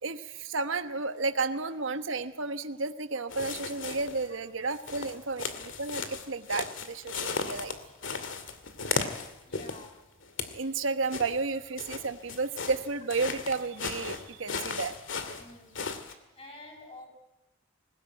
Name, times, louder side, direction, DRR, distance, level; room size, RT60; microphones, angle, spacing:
voice 1, 0.0-7.8 10.5-14.9, right 3 dB, 70° right, 9 dB, 1.1 m, -32 dB
sound 1, 3.3-4.3 4.7-9.9 10.2-10.6 11.1-16.1, left 4 dB, 65° left, 2.2 m, -36 dB
voice 2, 9.4-9.9 15.3-15.7 16.1-17.1, left 2 dB, 30° left, 1 dB, 6.8 m, -49 dB
21.0 x 20.0 x 9.1 m, 0.96 s
head